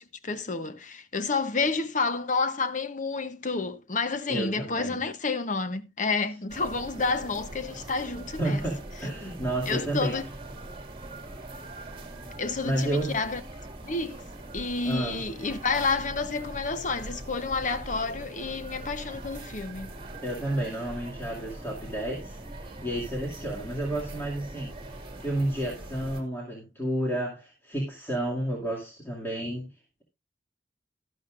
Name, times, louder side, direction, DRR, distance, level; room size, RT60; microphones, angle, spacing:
voice 1, 0.0-8.6 9.7-10.2 12.4-13.4 13.8-14.2 14.5-19.9, left 4 dB, 45° left, 0.9 m, -30 dB
voice 2, 4.3-5.0 8.4-10.2 12.6-13.1 14.8-15.2 20.2-24.7 25.2-29.7, right 1 dB, 15° left, 2.3 m, -31 dB
sound 1, 6.5-26.2, right 1 dB, 30° right, 2.1 m, -42 dB
12.0 x 11.5 x 2.5 m
head